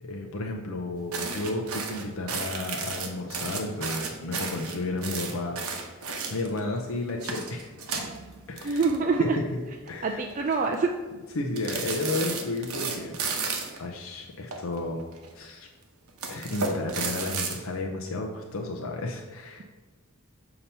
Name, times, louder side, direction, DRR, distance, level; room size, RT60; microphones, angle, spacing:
voice 1, 0.0-5.6 6.3-7.7 8.5-8.8 9.2-9.3 9.9-10.2 11.4-13.2 13.8-15.0 15.3-15.7 16.3-19.6, left 2 dB, 70° left, 0 dB, 0.6 m, -32 dB
sound 1, 1.1-6.6 7.1-9.4 9.7-9.9 10.3-10.7 11.5-13.8 14.5-15.3 16.1-17.6, right 4 dB, 90° right, 0.9 m, -33 dB
voice 2, 8.6-9.4 10.0-10.9, right 4 dB, 35° right, 2 dB, 0.3 m, -25 dB
6.8 x 2.9 x 5.4 m, 1.3 s
head